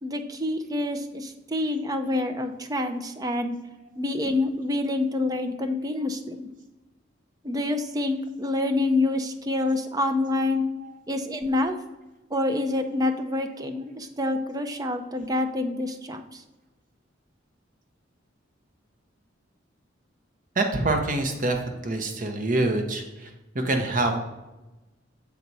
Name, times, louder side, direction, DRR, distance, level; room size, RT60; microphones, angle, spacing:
voice 1, 0.0-3.6 4.0-6.5 7.4-10.6 11.1-11.7 12.3-16.4, left 2 dB, 20° right, 7 dB, 0.5 m, -27 dB
voice 2, 20.5-24.2, right 2 dB, 45° right, 4 dB, 0.8 m, -26 dB
6.9 x 4.1 x 4.7 m, 1.1 s
head